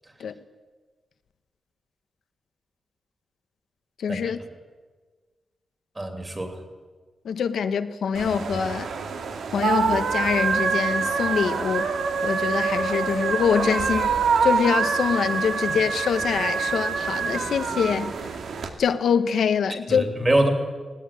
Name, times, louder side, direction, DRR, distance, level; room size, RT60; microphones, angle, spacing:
voice 1, 4.0-4.4 7.2-8.9 9.5-11.9 12.2-14.1 14.4-18.1 18.8-20.0, left 7 dB, 85° left, 1.1 m, -24 dB
voice 2, 6.0-6.6 19.9-20.5, right 1 dB, 20° right, 2.9 m, -24 dB
sound 1, 8.1-18.7, right 5 dB, 85° right, 2.4 m, -25 dB
19.5 x 18.0 x 9.8 m
wide cardioid pair, 170°, 0 cm